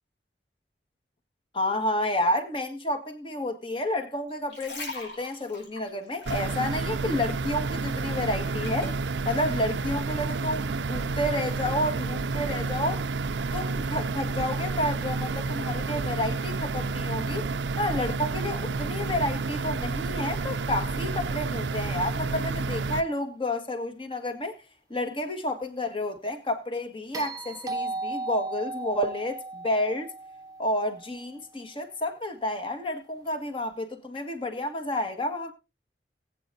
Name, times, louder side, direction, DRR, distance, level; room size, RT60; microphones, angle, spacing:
voice 1, 1.5-9.0 9.2-13.0 13.5-17.5 17.7-24.6 24.9-30.1 30.6-35.5, left 1 dB, 30° left, 1.7 m, -30 dB
sound 1, 4.3-7.3 7.6-9.0 9.6-9.8, left 2 dB, 90° left, 5.2 m, -41 dB
sound 2, 6.3-23.0, right 3 dB, 85° right, 0.5 m, -30 dB
sound 3, 27.1-31.4 33.6-33.7, right 3 dB, 20° right, 0.8 m, -36 dB
19.5 x 8.9 x 2.7 m
head